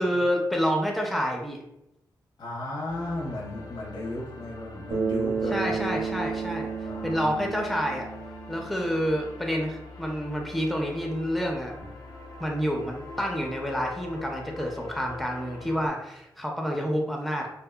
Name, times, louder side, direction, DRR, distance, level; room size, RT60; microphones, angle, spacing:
voice 1, 0.0-1.6 5.5-6.7 7.0-8.1 8.5-11.8 12.4-17.5, equal, ahead, 1 dB, 0.4 m, -28 dB
voice 2, 2.4-6.0 6.8-7.4, left 1 dB, 85° left, -4 dB, 1.0 m, -35 dB
sound 1, 2.9-15.9, left 3 dB, 65° left, 0.5 m, -44 dB
Bass guitar, 4.9-9.3, right 5 dB, 90° right, 0.6 m, -32 dB
2.7 x 2.0 x 2.2 m, 0.84 s
cardioid pair, 75°, 7 cm